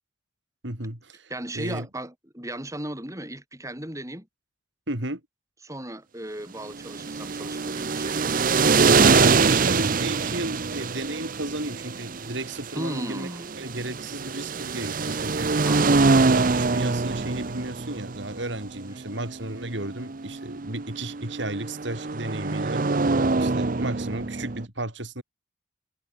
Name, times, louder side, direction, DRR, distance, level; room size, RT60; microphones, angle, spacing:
voice 1, 0.6-1.9 4.9-5.2 8.9-13.3 13.6-15.5 16.0-22.8 23.4-25.2, right 1 dB, 65° right, 4.8 m, -33 dB
voice 2, 1.3-4.3 5.6-8.6 12.8-13.5 15.6-16.1, right 1 dB, 15° right, 5.6 m, -36 dB
sound 1, 6.7-24.6, right 4 dB, 45° right, 0.7 m, -24 dB
head